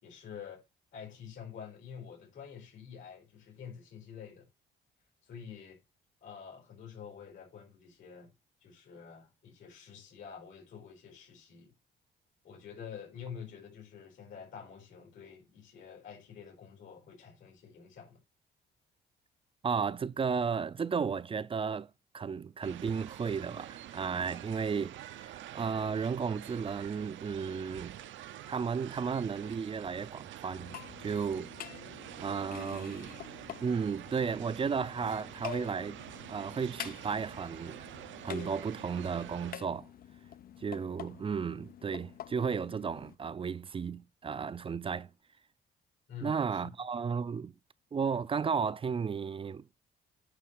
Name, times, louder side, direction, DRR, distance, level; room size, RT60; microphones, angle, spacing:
voice 1, 0.0-0.6 0.9-4.5 5.2-5.8 6.2-8.3 8.6-11.7 12.4-18.2 46.1-46.7, left 7 dB, 80° left, 4.4 m, -48 dB
voice 2, 19.6-28.0 28.5-31.5 32.2-33.2 33.6-36.0 36.3-37.8 38.2-39.9 40.6-45.1 46.2-47.5 47.9-49.7, right 6 dB, 25° right, 0.4 m, -34 dB
sound 1, 22.6-39.6, right 12 dB, 75° right, 0.6 m, -47 dB
sound 2, 30.5-43.2, left 11 dB, 50° left, 0.4 m, -47 dB
9.5 x 3.2 x 6.3 m
cardioid pair, 90°, 20 cm